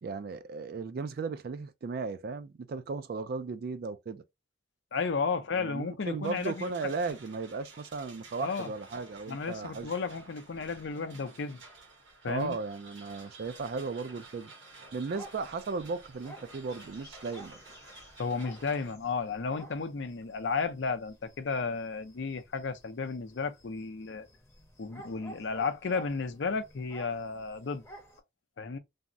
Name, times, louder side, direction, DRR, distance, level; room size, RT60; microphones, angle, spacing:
voice 1, 0.0-4.2 5.6-9.9 12.2-14.5 14.9-17.6, right 4 dB, 50° right, 0.3 m, -36 dB
voice 2, 4.9-6.9 8.4-8.7 9.3-11.6 12.2-12.6 18.2-24.3 24.8-27.8 28.6-28.8, left 4 dB, 65° left, 0.5 m, -33 dB
sound 1, 6.2-18.9, right 3 dB, 70° right, 1.2 m, -52 dB
sound 2, 15.1-28.2, right 1 dB, 15° left, 0.7 m, -53 dB
3.4 x 2.0 x 2.5 m
head